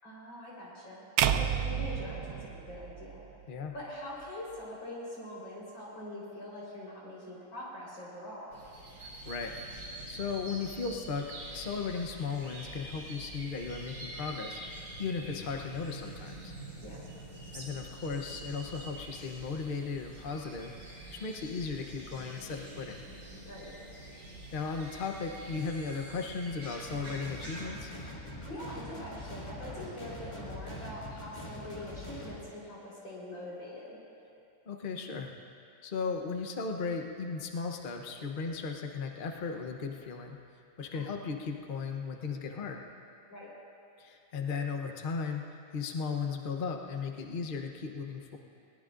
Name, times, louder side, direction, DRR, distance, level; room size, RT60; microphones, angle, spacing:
voice 1, 0.0-1.0 1.4-3.2 3.7-8.6 16.8-17.0 23.5-23.7 28.4-34.0 40.9-41.2 43.3-43.5, left 1 dB, 60° left, -6 dB, 4.8 m, -43 dB
sound 1, 1.2-3.4, right 9 dB, 75° right, 1.1 m, -30 dB
sound 2, 8.5-27.7, right 1 dB, 40° right, 4.0 m, -46 dB
voice 2, 9.0-9.6 10.1-14.6 15.0-16.5 17.5-20.7 21.1-23.1 24.5-27.9 34.7-35.3 35.8-40.4 40.8-42.8 44.0-45.4 45.7-48.4, left 5 dB, 85° left, 3 dB, 0.4 m, -36 dB
sound 3, 26.9-32.4, left 1 dB, 15° left, 2.0 m, -43 dB
21.5 x 19.0 x 2.5 m, 2.6 s
omnidirectional pair, 2.3 m